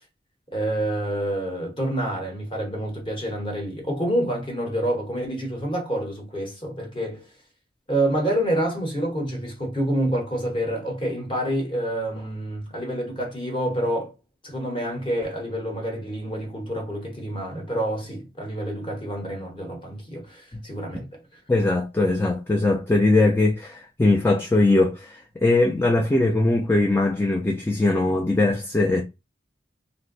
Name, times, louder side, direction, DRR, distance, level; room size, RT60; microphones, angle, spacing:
voice 1, 0.5-7.3 7.9-14.1 14.4-21.1, right 1 dB, 25° left, 1.0 m, -27 dB
voice 2, 21.5-29.0, left 2 dB, 10° left, 0.3 m, -21 dB
2.6 x 2.1 x 3.9 m
head